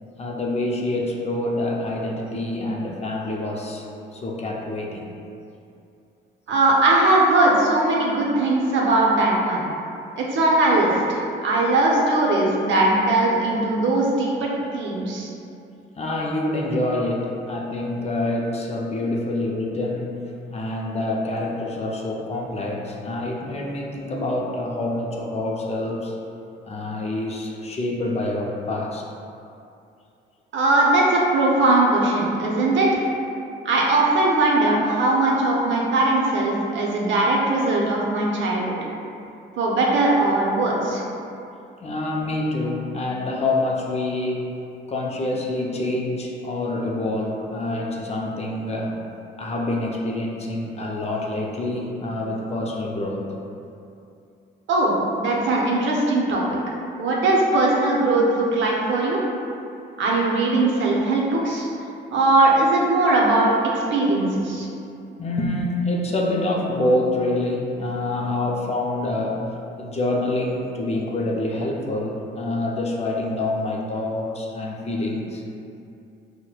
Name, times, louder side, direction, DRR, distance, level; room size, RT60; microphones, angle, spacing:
voice 1, 0.2-5.1 16.0-20.2 20.5-26.1 26.7-29.0 41.8-44.5 44.9-49.0 49.4-53.3 65.2-69.5 69.8-75.4, left 2 dB, 30° left, -1 dB, 0.4 m, -26 dB
voice 2, 6.5-9.6 10.2-15.3 30.5-33.0 33.6-38.8 39.6-41.0 54.7-56.4 57.0-59.2 60.0-61.7 62.1-64.7, right 2 dB, 70° right, -3 dB, 0.6 m, -20 dB
4.3 x 2.1 x 2.3 m, 2.6 s
cardioid pair, 90°, 20 cm